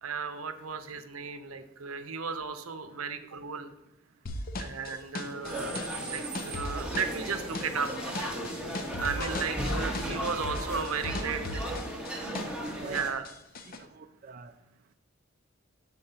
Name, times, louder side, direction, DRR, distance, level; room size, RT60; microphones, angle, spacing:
voice 1, 0.0-3.7 4.6-8.2 9.0-11.9 12.8-13.2, right 5 dB, 90° right, 10 dB, 0.7 m, -35 dB
sound 1, 4.3-12.7 12.9-13.8, left 2 dB, 45° left, 0.7 m, -38 dB
sound 2, 5.2-12.0, left 4 dB, 85° left, 0.7 m, -45 dB
sound 3, 5.4-13.1, right 1 dB, 5° right, 1.0 m, -36 dB
voice 2, 11.1-11.8 12.7-13.2 13.6-14.5, right 4 dB, 40° right, 8 dB, 0.4 m, -46 dB
7.3 x 4.2 x 6.7 m, 0.95 s
head